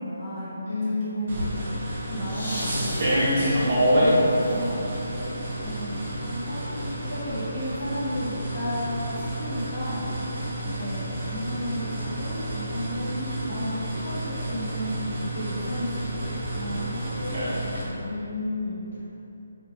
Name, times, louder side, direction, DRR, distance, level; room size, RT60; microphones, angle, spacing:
voice 1, 0.0-1.3 2.0-4.8 5.6-6.6 7.0-10.1 10.6-18.0, equal, 25° left, -12 dB, 0.9 m, -33 dB
voice 2, 0.7-1.5 18.0-19.1, left 2 dB, 60° left, -9 dB, 0.9 m, -30 dB
sound 1, 1.3-17.8, equal, 50° right, 0.7 m, -28 dB
sound 2, 2.2-6.1 7.3-7.4, equal, 85° left, 1.3 m, -38 dB
2.7 x 2.7 x 2.8 m, 2.9 s
figure-of-eight pair, 150°, 0 cm